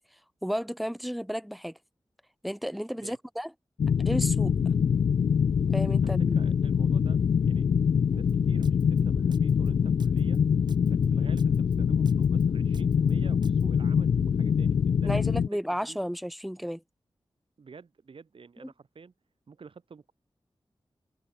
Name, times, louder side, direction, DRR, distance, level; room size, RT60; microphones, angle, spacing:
voice 1, 0.4-1.8 2.4-3.5 4.0-4.5 5.7-6.3 15.0-16.8, equal, ahead, 1.1 m, -32 dB
sound 1, 3.8-15.5, left 7 dB, 80° left, 0.4 m, -24 dB
voice 2, 6.0-7.7 8.1-10.4 10.8-15.4 15.7-16.0 17.6-19.1 19.5-20.1, right 5 dB, 75° right, 2.9 m, -49 dB
Drum kit, 8.3-13.6, right 4 dB, 55° right, 1.5 m, -47 dB
open air
cardioid pair, 60°, 9 cm